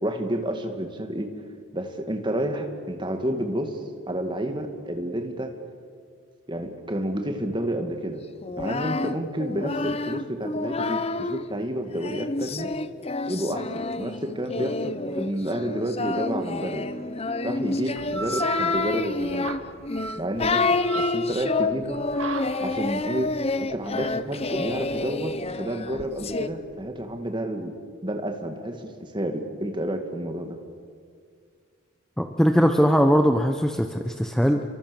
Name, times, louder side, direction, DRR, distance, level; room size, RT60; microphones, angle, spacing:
voice 1, 0.0-1.3 1.7-3.8 4.1-5.5 6.5-8.2 8.6-12.7 13.3-16.9 17.4-19.5 20.1-22.0 22.6-23.3 23.6-27.7 28.0-30.6, right 1 dB, 20° right, 5 dB, 2.3 m, -30 dB
Singing, 8.4-11.4 12.0-26.5, left 3 dB, 30° left, 0.8 m, -28 dB
sound 1, 18.0-27.1, right 4 dB, 70° right, 1.9 m, -36 dB
voice 2, 32.2-34.6, equal, ahead, 5 dB, 0.9 m, -20 dB
30.0 x 24.0 x 7.2 m, 2.1 s
head